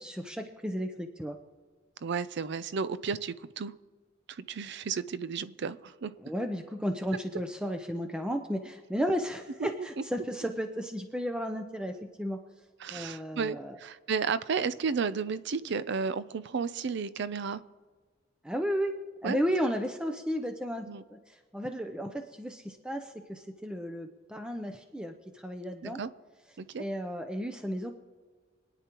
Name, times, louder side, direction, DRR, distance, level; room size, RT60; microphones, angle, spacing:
voice 1, 0.0-1.4 6.2-12.4 12.9-13.8 18.4-19.0 19.2-26.0 26.8-27.9, equal, 5° right, 5 dB, 0.6 m, -34 dB
voice 2, 2.0-3.7 4.3-6.1 9.6-9.7 12.8-17.6 19.2-19.4 20.9-21.0 25.8-26.1 26.6-26.8, right 5 dB, 65° right, 16 dB, 0.5 m, -33 dB
25.5 x 9.9 x 3.0 m, 1.5 s
head